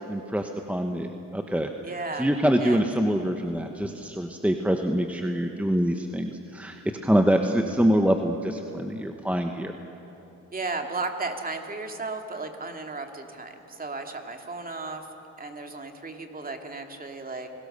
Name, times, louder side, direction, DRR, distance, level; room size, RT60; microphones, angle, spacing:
voice 1, 0.1-1.7 2.2-9.7, equal, 5° right, 4 dB, 1.2 m, -25 dB
voice 2, 1.8-2.3 2.6-2.8 10.5-15.0 15.4-17.5, right 3 dB, 30° right, 4 dB, 2.5 m, -34 dB
29.0 x 18.5 x 6.8 m, 3.0 s
cardioid pair, 90°, 30 cm